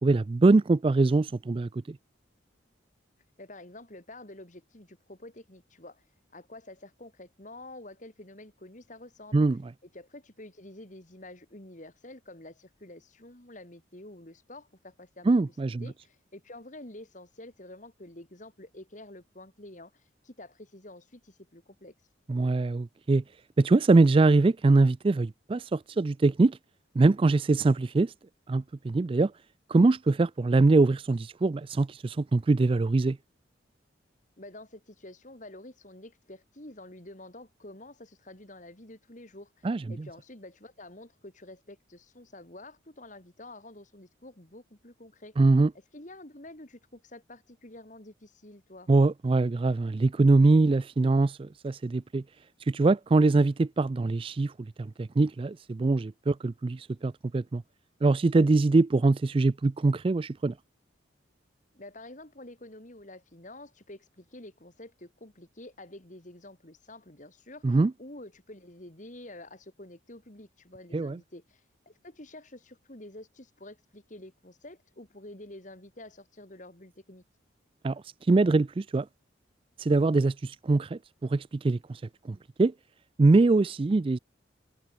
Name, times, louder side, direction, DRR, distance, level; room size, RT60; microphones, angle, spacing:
voice 1, 0.0-2.0 9.3-9.6 15.3-15.8 22.3-23.2 23.6-26.6 27.0-28.1 28.5-29.3 29.7-33.2 39.6-39.8 45.4-45.7 48.9-52.2 52.7-54.5 54.8-57.6 58.0-60.5 67.6-67.9 70.9-71.2 77.8-78.0 78.3-79.1 79.8-82.0 82.3-82.7 83.2-84.2, right 3 dB, 30° right, 0.3 m, -23 dB
voice 2, 3.4-6.0 6.3-9.5 9.8-21.9 34.4-45.4 45.9-48.9 61.7-77.2, left 1 dB, 40° left, 2.8 m, -48 dB
head